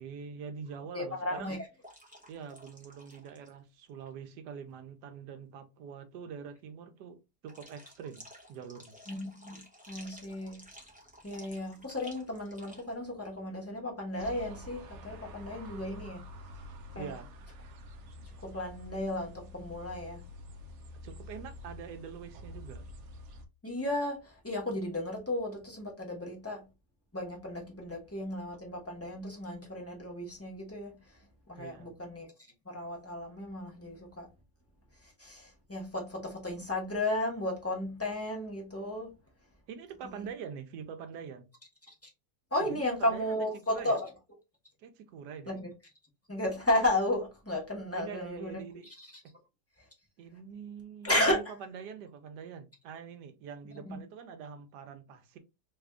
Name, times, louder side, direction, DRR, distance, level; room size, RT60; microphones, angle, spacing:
voice 1, 0.0-1.5 2.3-7.2 7.4-8.2 8.5-8.9 16.9-17.3 21.0-22.8 31.6-32.0 39.7-41.5 42.7-43.3 43.7-44.0 44.8-45.7 47.9-48.9 50.2-55.4, right 7 dB, 85° right, 1.2 m, -44 dB
voice 2, 0.9-1.7 9.1-9.6 9.9-10.6 11.2-16.2 16.9-17.1 18.4-20.2 23.6-26.6 27.1-31.2 31.5-32.3 32.6-34.3 35.0-39.1 40.0-40.2 41.9-42.0 42.5-44.1 45.5-45.7 46.3-48.6 49.0-49.1 51.0-51.4 53.9-54.0, left 1 dB, 10° left, 0.8 m, -34 dB
sound 1, 1.8-3.6 3.9-4.1 7.5-12.9, equal, 10° right, 0.4 m, -53 dB
sound 2, 14.2-23.4, left 1 dB, 65° right, 0.7 m, -47 dB
3.4 x 2.4 x 3.4 m
omnidirectional pair, 1.8 m